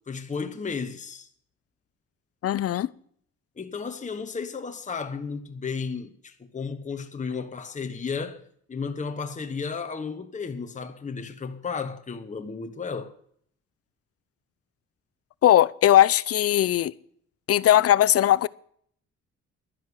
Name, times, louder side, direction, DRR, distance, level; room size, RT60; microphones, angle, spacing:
voice 1, 0.1-1.3 3.6-13.1, left 5 dB, 25° left, 1.2 m, -33 dB
voice 2, 2.4-2.9 15.4-16.9 17.5-18.5, left 12 dB, 50° left, 0.6 m, -19 dB
11.5 x 10.5 x 6.4 m
cardioid pair, 90°, 30 cm